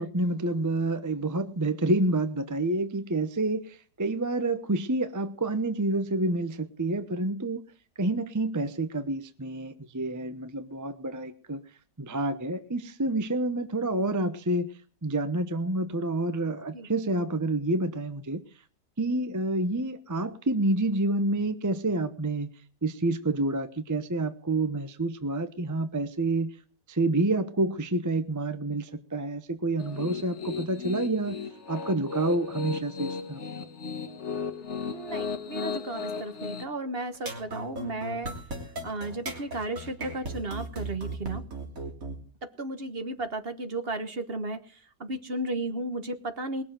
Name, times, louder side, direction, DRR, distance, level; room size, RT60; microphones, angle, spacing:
voice 1, 0.0-7.7 8.0-11.6 12.0-14.7 15.0-18.4 19.0-22.5 22.8-26.5 26.9-31.4 31.7-33.4, right 2 dB, 15° right, 0.7 m, -28 dB
Piano, 29.8-36.6, left 5 dB, 45° left, 1.8 m, -35 dB
voice 2, 34.8-38.3 38.8-41.4 42.6-44.6 45.0-46.6, right 2 dB, 40° right, 1.4 m, -34 dB
sound 1, 37.1-42.2, right 2 dB, 55° right, 3.5 m, -36 dB
20.5 x 7.3 x 7.6 m
omnidirectional pair, 1.7 m